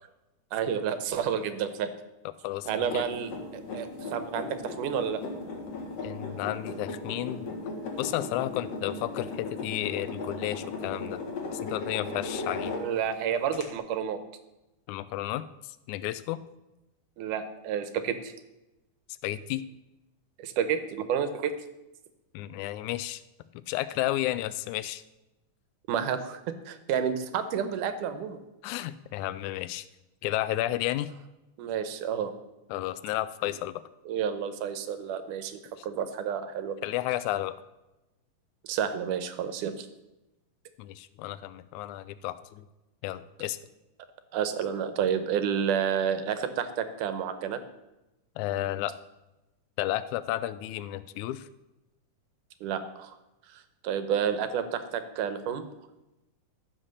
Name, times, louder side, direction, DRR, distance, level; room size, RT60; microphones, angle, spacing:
voice 1, 0.5-1.9 2.7-5.2 12.7-14.2 17.2-18.3 20.4-21.5 25.9-26.4 26.7-28.4 31.6-32.3 34.1-36.8 38.6-39.9 44.3-47.6 52.6-53.2 53.5-55.6, right 8 dB, 80° right, 10 dB, 2.4 m, -30 dB
voice 2, 2.4-3.0 6.0-7.5 8.0-11.2 11.5-12.8 14.9-16.4 19.2-19.6 22.3-23.2 23.5-25.0 28.6-29.9 30.2-31.1 32.7-33.8 35.8-35.9 36.8-37.6 40.8-42.7 43.0-43.6 48.4-49.0 49.8-51.5, left 14 dB, 80° left, 14 dB, 1.9 m, -32 dB
sound 1, 2.6-13.1 13.5-13.6, left 3 dB, 55° left, 2.7 m, -37 dB
14.5 x 5.9 x 6.5 m, 0.99 s
omnidirectional pair, 3.6 m